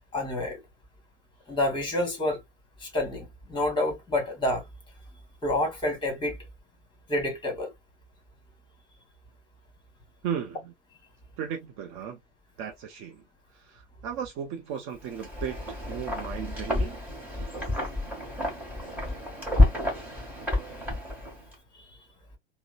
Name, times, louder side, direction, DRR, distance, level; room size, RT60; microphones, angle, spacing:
voice 1, 0.1-0.6 1.5-2.4 2.8-4.6 5.4-6.4 7.1-7.7, left 1 dB, 15° left, 1.5 m, -28 dB
voice 2, 10.2-10.7 11.4-12.2 12.6-13.2 13.7-17.0, right 8 dB, 35° right, 0.6 m, -35 dB
Wind, 15.0-21.5, left 2 dB, 5° right, 1.5 m, -28 dB
3.7 x 2.1 x 2.2 m
figure-of-eight pair, 85°, 35 cm